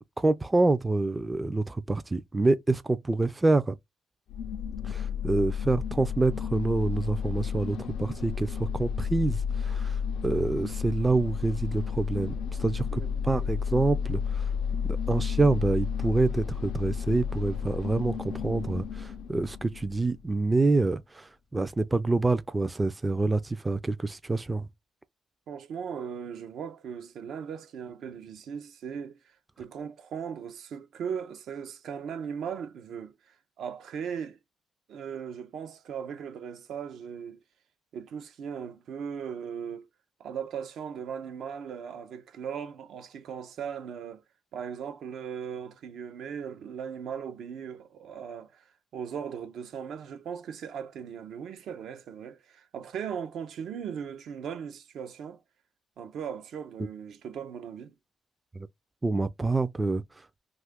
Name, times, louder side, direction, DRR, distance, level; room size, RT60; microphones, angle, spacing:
voice 1, 0.2-3.8 4.8-12.3 12.6-14.5 14.8-24.7 58.5-58.7 59.0-60.0, right 3 dB, 20° right, 0.3 m, -27 dB
sound 1, 4.3-20.2, left 7 dB, 75° left, 0.4 m, -32 dB
voice 2, 12.9-13.2 25.5-34.4 34.9-37.4 37.9-39.9 40.2-44.2 44.5-48.6 48.9-55.4 56.0-57.9, right 7 dB, 75° right, 0.5 m, -38 dB
2.5 x 2.4 x 3.5 m
cardioid pair, 90°, 0 cm